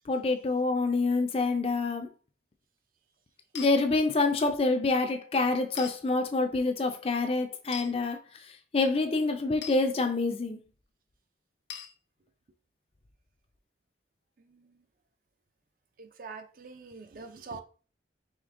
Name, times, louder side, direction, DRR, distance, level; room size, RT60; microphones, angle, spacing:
voice 1, 0.1-2.1 3.5-8.2 8.7-10.6, left 3 dB, 30° left, 0.4 m, -27 dB
sound 1, 3.5-3.7 5.8-5.9 7.7-7.9 9.6-9.8 11.7-11.9, left 8 dB, 75° left, 0.7 m, -39 dB
voice 2, 16.0-17.6, right 4 dB, 50° right, 0.5 m, -43 dB
5.0 x 3.2 x 2.5 m
head